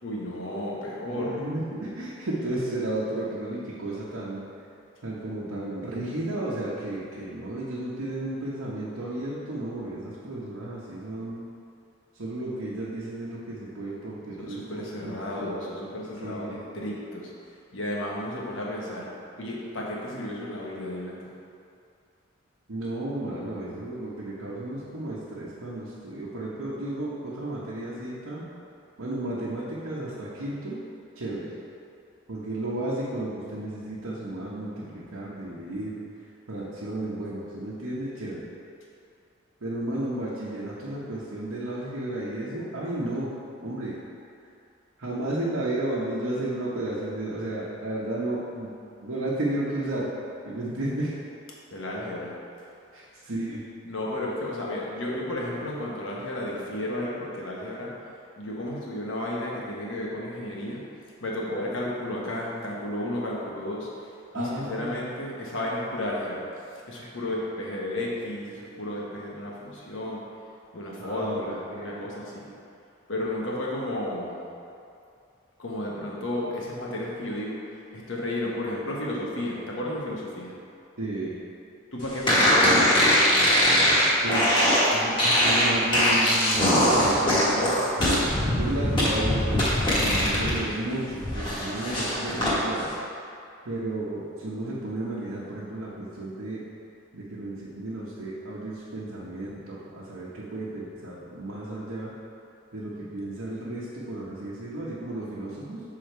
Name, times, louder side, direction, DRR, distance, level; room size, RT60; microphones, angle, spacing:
voice 1, 0.0-1.4 14.4-17.3 17.7-19.1 19.4-21.3 51.7-52.4 53.8-57.9 58.4-60.8 61.2-63.9 64.3-66.4 66.7-70.2 70.7-72.5 73.1-74.5 75.6-77.6 77.9-80.5 81.9-83.4 90.0-90.7, left 1 dB, 65° left, -4 dB, 1.1 m, -33 dB
voice 2, 1.1-4.4 5.0-11.4 12.1-15.7 16.2-16.6 22.7-28.4 29.0-30.8 31.1-31.5 32.3-36.0 36.5-38.4 39.6-43.3 43.6-44.0 45.0-48.7 49.0-50.1 50.4-51.1 52.9-53.6 64.3-64.9 67.0-67.1 71.0-72.1 81.0-81.3 84.2-84.5 84.9-92.9 93.6-96.6 97.1-102.1 102.7-105.8, right 1 dB, 85° right, -8 dB, 1.0 m, -33 dB
sound 1, 82.3-90.6 90.9-92.5, equal, 25° left, 1.3 m, -21 dB
6.6 x 3.7 x 4.5 m, 2.5 s
head